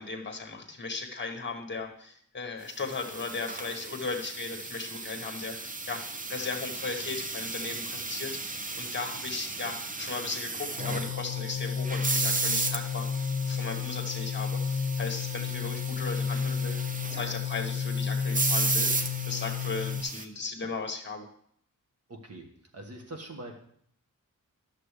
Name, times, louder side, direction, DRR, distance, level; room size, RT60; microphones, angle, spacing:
voice 1, 0.0-21.3, left 3 dB, 35° left, 4 dB, 1.5 m, -37 dB
sound 1, 2.8-20.2, right 3 dB, 25° right, 0.6 m, -35 dB
sound 2, 10.8-20.0, left 7 dB, 50° left, 1.1 m, -32 dB
voice 2, 22.1-22.4 22.7-23.6, right 1 dB, 50° right, 3 dB, 1.6 m, -42 dB
11.5 x 6.7 x 3.3 m, 0.65 s
wide cardioid pair, 115°, 33 cm